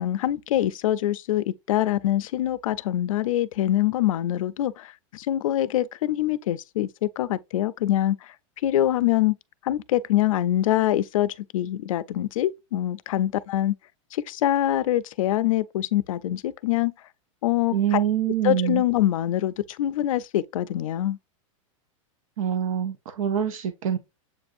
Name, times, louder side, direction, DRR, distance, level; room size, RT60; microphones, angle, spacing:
voice 1, 0.0-8.3 8.6-9.4 9.6-13.7 14.1-16.9 17.4-18.0 18.4-21.2, left 13 dB, 75° left, 0.4 m, -24 dB
voice 2, 17.7-18.8 22.4-24.0, right 9 dB, 75° right, 0.7 m, -25 dB
7.5 x 2.6 x 2.4 m
supercardioid pair, 170°, 17 cm